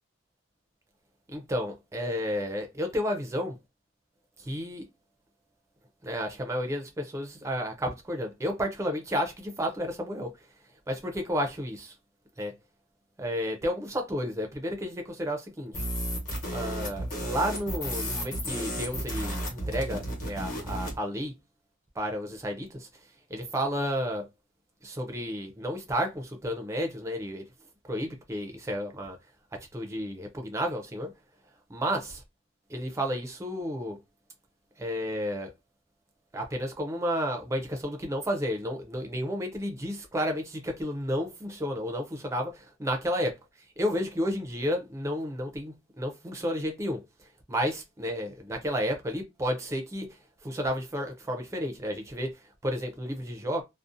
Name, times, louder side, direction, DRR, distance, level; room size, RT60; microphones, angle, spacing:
voice 1, 1.3-3.6 4.4-4.9 6.0-10.3 10.9-11.9 12.4-12.6 13.2-15.8 16.5-21.3 22.0-22.9 23.3-24.3 24.8-27.5 27.9-29.2 29.5-31.1 31.7-32.2 32.7-34.0 34.8-35.5 36.3-43.4 43.8-47.0 47.5-53.6, equal, 15° right, 0.4 m, -32 dB
sound 1, 15.7-21.0, equal, 45° left, 1.0 m, -33 dB
2.5 x 2.0 x 2.4 m
head